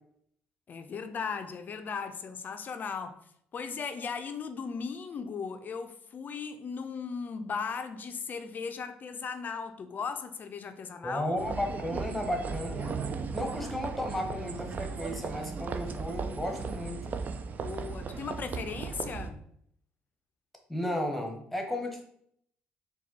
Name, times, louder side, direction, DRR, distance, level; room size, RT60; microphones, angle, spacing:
voice 1, 0.7-3.2 3.5-11.3 17.6-19.4, left 5 dB, 45° left, 8 dB, 0.4 m, -37 dB
voice 2, 11.0-13.0 13.3-17.0 20.7-22.0, left 1 dB, 5° left, 2 dB, 1.0 m, -34 dB
sound 1, 11.4-19.3, right 5 dB, 40° right, 0.4 m, -36 dB
4.2 x 2.3 x 4.0 m, 0.68 s
supercardioid pair, 65°, 4 cm